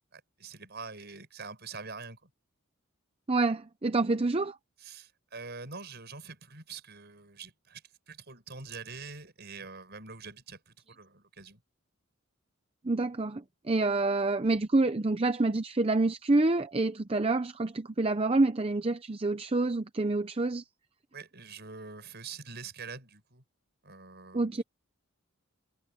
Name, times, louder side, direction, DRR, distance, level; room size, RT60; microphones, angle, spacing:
voice 1, 0.1-2.3 4.8-11.6 21.1-23.4 23.8-24.5, right 4 dB, 50° right, 6.7 m, -45 dB
voice 2, 3.3-4.6 12.8-20.6 24.3-24.6, right 2 dB, 25° right, 0.6 m, -27 dB
head